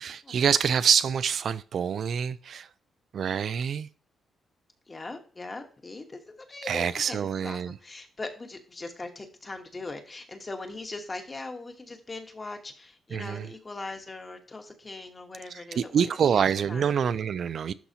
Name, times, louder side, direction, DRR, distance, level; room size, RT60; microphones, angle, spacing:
voice 1, 0.0-2.7 3.1-3.9 6.6-7.8 13.1-13.5 15.5-17.7, right 7 dB, 55° right, 0.3 m, -26 dB
voice 2, 4.9-16.4 16.7-16.9, left 3 dB, 25° left, 1.2 m, -40 dB
11.5 x 4.1 x 2.8 m
cardioid pair, 135°, 0 cm